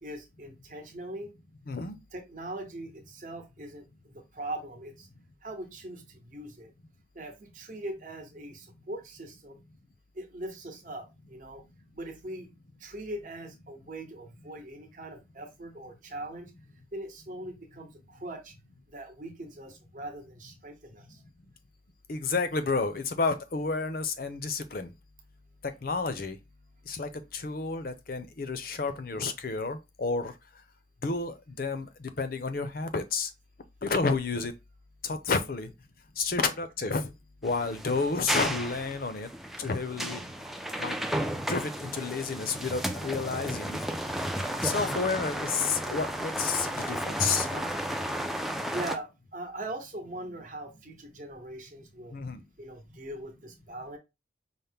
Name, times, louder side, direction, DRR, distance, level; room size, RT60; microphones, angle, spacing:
voice 1, 0.0-1.3 2.1-5.1 5.4-6.7 7.1-9.6 10.1-11.6 11.9-12.5 12.8-16.5 16.9-18.5 18.9-21.2 35.3-35.7 36.3-36.6 40.6-40.7 48.7-52.1 52.6-54.0, right 1 dB, 45° right, 0.9 m, -41 dB
voice 2, 1.7-2.0 22.1-24.9 25.8-26.4 26.9-30.3 31.0-33.3 33.8-34.5 35.0-35.7 36.2-37.1 37.4-39.3 39.6-40.2 40.8-41.0 41.5-43.8 44.6-47.7 52.1-52.4, left 4 dB, 50° left, 0.5 m, -30 dB
sound 1, 37.4-49.0, right 1 dB, ahead, 0.3 m, -33 dB
5.6 x 2.1 x 3.4 m
head